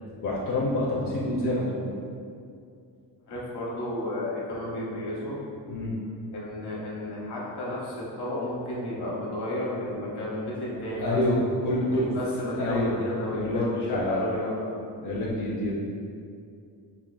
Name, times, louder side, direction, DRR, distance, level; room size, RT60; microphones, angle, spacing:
voice 1, 0.2-1.9 5.7-5.9 11.0-12.1 12.5-12.9 13.3-14.3 15.0-15.8, left 1 dB, 50° left, -5 dB, 0.6 m, -27 dB
voice 2, 3.3-5.4 6.3-11.2 11.9-14.7, left 1 dB, 70° left, -5 dB, 1.1 m, -32 dB
5.3 x 2.7 x 2.3 m, 2.4 s
wide cardioid pair, 145°, 41 cm